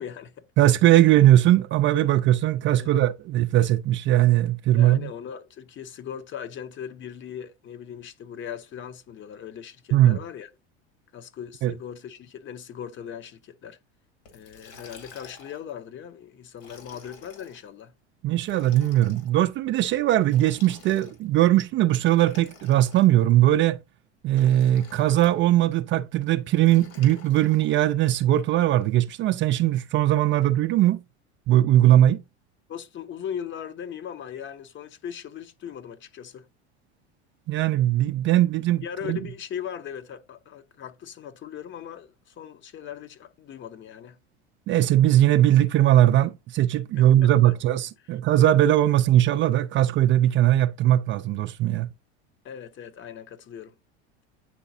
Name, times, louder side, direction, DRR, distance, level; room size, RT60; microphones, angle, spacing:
voice 1, 0.0-0.5 2.8-2.9 4.8-10.5 11.1-13.8 14.3-17.9 32.7-36.5 38.8-44.2 47.0-47.5 52.4-53.8, left 8 dB, 35° left, 0.8 m, -39 dB
voice 2, 0.6-5.1 9.9-10.2 11.6-11.7 18.2-23.8 24.2-31.0 31.5-32.2 37.5-38.8 39.1-39.2 44.7-51.9, right 13 dB, 35° right, 0.4 m, -20 dB
Liquid, 14.3-15.7 16.5-17.6 18.4-19.3 20.2-21.4 22.1-23.3 24.3-25.4 26.7-27.7, left 4 dB, 70° left, 2.7 m, -49 dB
9.1 x 3.8 x 2.7 m
hypercardioid pair, 95°, 33 cm